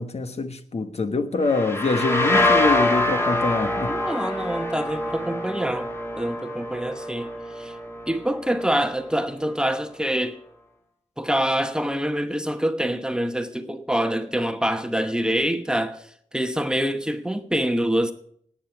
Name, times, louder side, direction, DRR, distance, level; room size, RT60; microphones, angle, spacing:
voice 1, 0.0-3.9, left 3 dB, 55° left, 1.2 m, -25 dB
sound 1, 1.4-9.0, left 1 dB, 20° left, 2.1 m, -25 dB
voice 2, 3.9-5.9 6.2-7.3 7.5-7.7 8.1-10.4 11.2-16.0 16.3-18.1, right 1 dB, 5° right, 1.0 m, -25 dB
18.5 x 8.7 x 5.9 m
wide cardioid pair, 130°, 13 cm